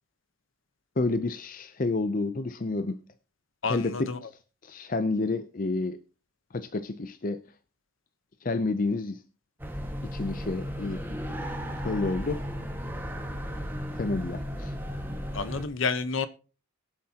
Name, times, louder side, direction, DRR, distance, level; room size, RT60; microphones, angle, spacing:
voice 1, 1.0-3.0 3.7-4.1 4.6-6.0 6.5-7.4 8.4-9.2 10.1-11.2 11.8-12.4 14.0-14.7, left 3 dB, 40° left, 0.5 m, -29 dB
voice 2, 3.6-4.2 15.3-16.3, left 4 dB, 70° left, 1.0 m, -29 dB
sound 1, 9.6-15.6, equal, 10° right, 1.6 m, -35 dB
21.5 x 7.5 x 2.9 m
head